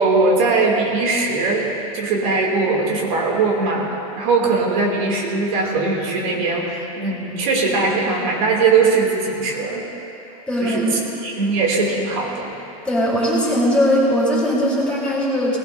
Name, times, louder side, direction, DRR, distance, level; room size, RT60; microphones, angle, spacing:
voice 1, 0.0-3.9 4.2-9.9 10.6-12.5, right 3 dB, 70° right, -2 dB, 2.9 m, -20 dB
voice 2, 10.5-11.0 12.8-15.6, equal, 5° left, -7 dB, 3.9 m, -19 dB
18.5 x 17.0 x 2.8 m, 2.9 s
supercardioid pair, 145°, 19 cm